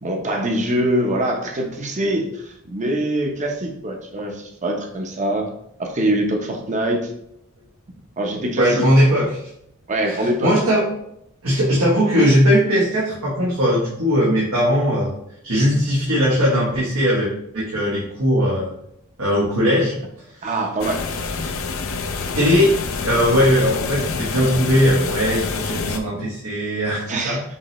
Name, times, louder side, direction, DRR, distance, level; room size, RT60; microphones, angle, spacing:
voice 1, 0.0-5.5 5.8-7.1 8.2-8.9 9.9-10.5 20.4-21.5 25.3-25.5 27.0-27.4, right 1 dB, 35° right, 2 dB, 0.7 m, -24 dB
voice 2, 8.6-9.4 10.4-10.8 11.4-15.1 15.4-18.7 19.2-19.9 20.4-20.5 22.3-22.7 23.0-27.4, equal, 90° right, -6 dB, 1.3 m, -19 dB
sound 1, 20.8-26.0, left 4 dB, 70° left, 0.5 m, -27 dB
5.3 x 3.2 x 3.0 m, 0.75 s
head